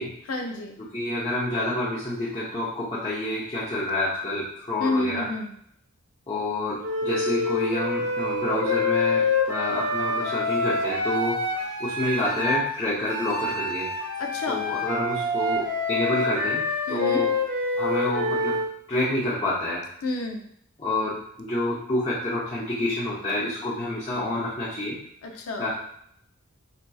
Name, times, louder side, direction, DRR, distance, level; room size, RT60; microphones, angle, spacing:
voice 1, 0.3-0.8 4.8-5.5 14.2-14.7 16.9-17.3 20.0-20.4 25.2-25.7, left 2 dB, 90° left, 3 dB, 0.6 m, -29 dB
voice 2, 0.9-5.3 6.3-11.4 11.8-13.9 14.5-17.3 17.8-18.6 18.9-19.8 20.8-25.0 25.6-25.7, left 1 dB, 25° left, -9 dB, 0.6 m, -28 dB
Wind instrument woodwind instrument, 6.8-12.7 13.1-18.7, left 2 dB, 75° right, 0.8 m, -26 dB
4.4 x 2.7 x 2.3 m, 0.72 s
head